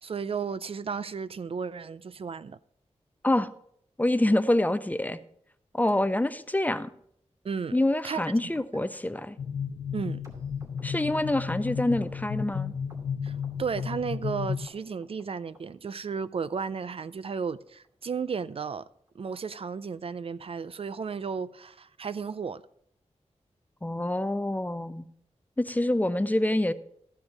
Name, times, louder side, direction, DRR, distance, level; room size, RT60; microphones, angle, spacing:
voice 1, 0.0-2.6 7.4-7.8 8.0-8.2 9.9-10.2 13.2-18.9 19.2-22.6, right 6 dB, 55° right, 0.4 m, -34 dB
voice 2, 4.0-5.2 5.7-6.9 7.7-9.4 10.8-12.7 23.8-25.1 25.6-26.7, left 1 dB, 15° left, 0.4 m, -26 dB
sound 1, 9.4-14.7, left 7 dB, 85° left, 0.5 m, -33 dB
sound 2, 10.2-13.5 13.8-14.4 14.7-15.2 15.5-15.6 15.9-16.1 16.4-16.5 16.8-17.0 17.3-17.4 17.7-17.9 18.2-18.3 18.5-18.7 19.1-19.2 19.4-19.6 20.0-20.1, right 1 dB, 25° right, 2.5 m, -53 dB
13.0 x 5.4 x 5.9 m
wide cardioid pair, 115°, 12 cm